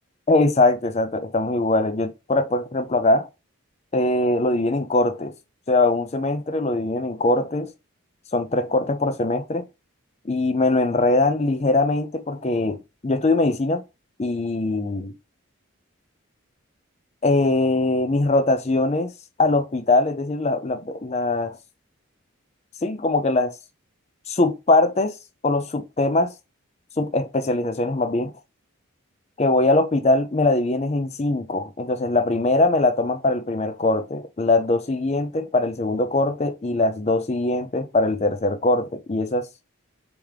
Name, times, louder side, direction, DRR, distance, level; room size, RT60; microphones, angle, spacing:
voice 1, 0.3-3.3 3.9-5.3 5.7-7.7 8.3-9.7 10.2-13.8 14.2-15.1 17.2-19.1 19.4-21.6 22.8-23.5 24.3-25.1 25.4-26.3 27.0-28.3 29.4-39.5, left 2 dB, 30° left, 0.5 m, -22 dB
3.6 x 3.0 x 4.7 m
head